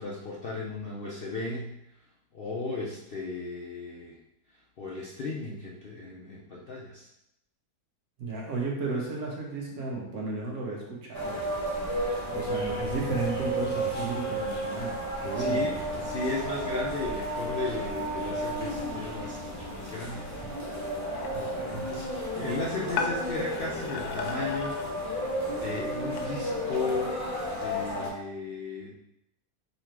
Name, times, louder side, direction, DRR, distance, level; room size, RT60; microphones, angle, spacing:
voice 1, 0.0-1.7 2.3-4.2 4.8-7.1 15.4-20.3 21.7-27.2 27.5-29.0, left 3 dB, 55° left, -3 dB, 0.6 m, -35 dB
voice 2, 8.2-11.4 12.3-16.0 21.3-21.8 22.4-22.5, right 3 dB, 75° right, -2 dB, 1.6 m, -34 dB
sound 1, 11.1-28.1, equal, 15° left, 0.7 m, -32 dB
sound 2, 21.1-26.3, left 5 dB, 90° left, 1.1 m, -38 dB
3.9 x 3.0 x 4.5 m, 0.80 s
omnidirectional pair, 1.6 m